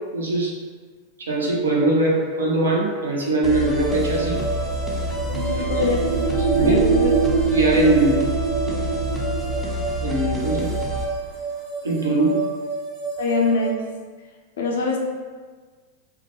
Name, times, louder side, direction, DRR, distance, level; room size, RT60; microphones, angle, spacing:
voice 1, 0.1-0.5 1.2-4.4 5.5-5.8 6.5-6.9 7.5-8.2 10.0-10.7 11.8-12.4, right 2 dB, 70° right, -2 dB, 0.5 m, -21 dB
sound 1, 3.4-11.0, left 1 dB, ahead, 0.4 m, -28 dB
sound 2, 3.6-13.7, right 4 dB, 50° right, 1.0 m, -30 dB
sound 3, 4.6-9.6, right 6 dB, 25° right, 0.8 m, -24 dB
voice 2, 5.3-6.2 6.6-7.1 13.2-13.8 14.6-15.0, left 3 dB, 60° left, 0 dB, 0.4 m, -23 dB
2.3 x 2.1 x 3.0 m, 1.5 s
figure-of-eight pair, 90°, 0 cm